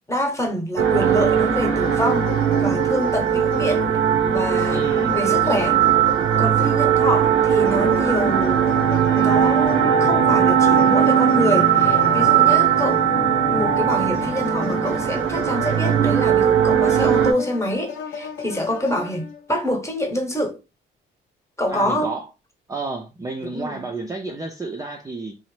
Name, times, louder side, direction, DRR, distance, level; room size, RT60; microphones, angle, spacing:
voice 1, 0.0-2.3 2.6-3.9 4.3-5.8 6.4-8.7 9.1-13.1 13.5-20.6 21.6-22.1 23.4-23.9, equal, 15° left, 0.9 m, -26 dB
sound 1, 0.8-17.3, right 8 dB, 85° right, 0.7 m, -19 dB
sound 2, 1.8-4.2 4.6-10.2 10.8-13.3 13.9-16.5 16.9-19.5, left 8 dB, 80° left, 0.6 m, -36 dB
voice 2, 4.7-5.2 21.7-22.3 22.7-25.4, right 3 dB, 15° right, 0.4 m, -31 dB
sound 3, 9.3-16.1 16.4-16.5, left 2 dB, 40° left, 0.6 m, -34 dB
2.9 x 2.0 x 3.1 m
cardioid pair, 90°, 20 cm